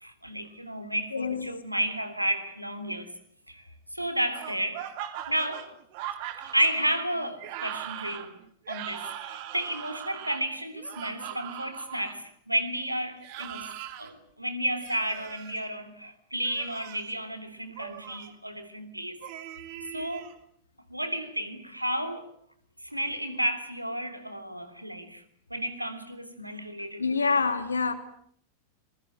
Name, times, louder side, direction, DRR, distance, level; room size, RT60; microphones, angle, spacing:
voice 1, 0.0-3.1 3.5-3.6 3.9-4.9 5.3-5.7 6.5-8.3 8.7-13.7 14.0-19.2 19.9-20.3 20.9-22.3 22.8-25.2 25.5-27.1, right 1 dB, 90° right, 3.1 m, -32 dB
voice 2, 1.1-1.5 27.0-27.9, left 4 dB, 75° left, 2.8 m, -26 dB
sound 1, 4.3-12.2 13.2-14.1 14.8-15.6 16.4-17.1 17.8-18.3 19.2-20.3, right 12 dB, 45° right, 2.8 m, -40 dB
26.5 x 21.5 x 9.1 m
figure-of-eight pair, 90°, 0 cm